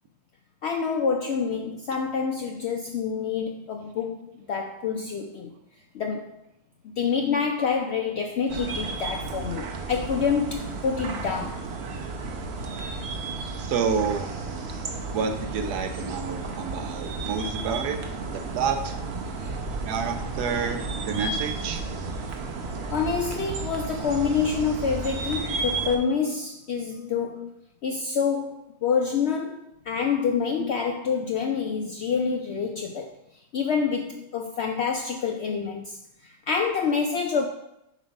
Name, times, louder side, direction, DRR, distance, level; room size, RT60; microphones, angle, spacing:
voice 1, 0.6-5.5 5.9-6.4 7.0-11.6 19.4-19.5 22.9-27.5 27.8-33.1 33.5-37.4, left 6 dB, 80° left, 3 dB, 0.5 m, -27 dB
sound 1, 8.5-26.0, right 3 dB, 55° right, 0.8 m, -33 dB
voice 2, 13.6-14.3 15.1-18.0 18.3-19.0 19.8-21.8, right 6 dB, 80° right, 6 dB, 1.3 m, -29 dB
7.4 x 3.1 x 5.2 m, 0.84 s
omnidirectional pair, 1.7 m